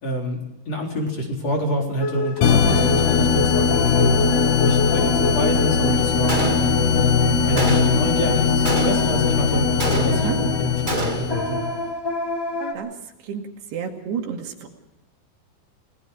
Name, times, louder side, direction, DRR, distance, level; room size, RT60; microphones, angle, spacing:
voice 1, 0.0-0.4 0.7-11.6, equal, 40° left, 0 dB, 4.8 m, -27 dB
sound 1, 2.0-12.7, left 2 dB, 5° left, 2.3 m, -29 dB
sound 2, 2.4-11.8, left 6 dB, 65° left, 2.1 m, -20 dB
Gunshot gunfire, 6.3-7.0 7.6-8.1 8.6-9.3 9.8-10.5 10.9-11.4, right 2 dB, 40° right, 0.6 m, -27 dB
voice 2, 13.7-14.7, right 7 dB, 75° right, 3 dB, 4.3 m, -30 dB
30.0 x 19.5 x 4.9 m, 0.92 s
omnidirectional pair, 4.9 m